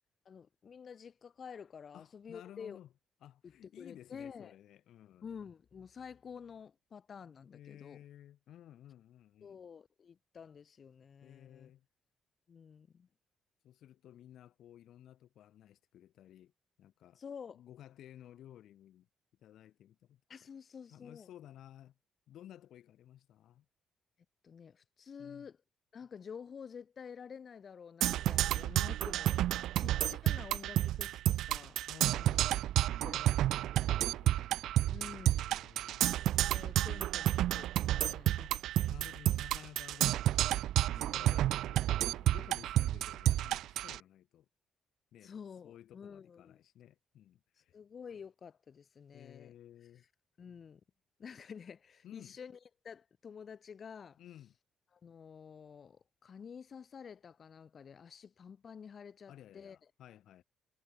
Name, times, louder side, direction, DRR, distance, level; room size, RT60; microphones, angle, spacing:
voice 1, 0.2-2.8 3.4-4.5 5.2-8.0 9.4-11.7 12.5-13.1 17.2-17.6 20.3-21.3 24.4-25.6 25.9-29.5 29.7-31.8 32.9-33.7 34.9-35.4 36.5-38.3 41.0-41.6 45.2-46.6 47.7-49.5 50.4-50.8 51.2-52.6 52.8-54.2 54.9-59.8, left 6 dB, 50° left, 6.2 m, -50 dB
voice 2, 1.9-2.9 3.2-5.3 7.5-9.6 11.2-11.9 13.6-16.5 16.8-17.2 17.5-19.1 19.4-20.2 20.9-21.9 22.3-23.7 25.2-25.5 31.9-32.6 33.8-34.4 34.8-36.1 38.4-38.6 38.9-40.5 40.9-44.5 45.1-45.4 45.6-47.8 49.1-50.0 52.0-52.4 54.2-54.5 59.3-60.4, left 11 dB, 75° left, 5.7 m, -55 dB
Percussion, 28.0-44.0, right 13 dB, 80° right, 0.6 m, -30 dB
cardioid pair, 80°, 0 cm